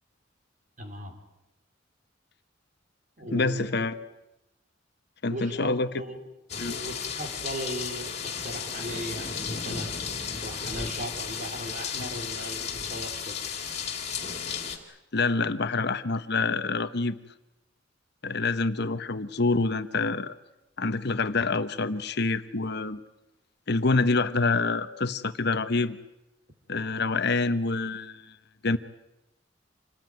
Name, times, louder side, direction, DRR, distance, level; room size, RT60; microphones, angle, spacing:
voice 1, 0.8-1.2 3.2-3.9 5.3-6.2 6.5-10.0 10.3-13.4, equal, 45° right, 5 dB, 4.0 m, -38 dB
voice 2, 3.3-3.9 5.2-5.9 6.6-6.7 15.1-17.2 18.2-20.3 20.8-23.0 23.7-26.0 26.7-28.3 28.6-28.8, left 3 dB, 60° left, 11 dB, 1.1 m, -26 dB
sound 1, 6.5-14.8, left 6 dB, 35° left, 3.4 m, -34 dB
27.5 x 19.5 x 9.4 m, 0.94 s
head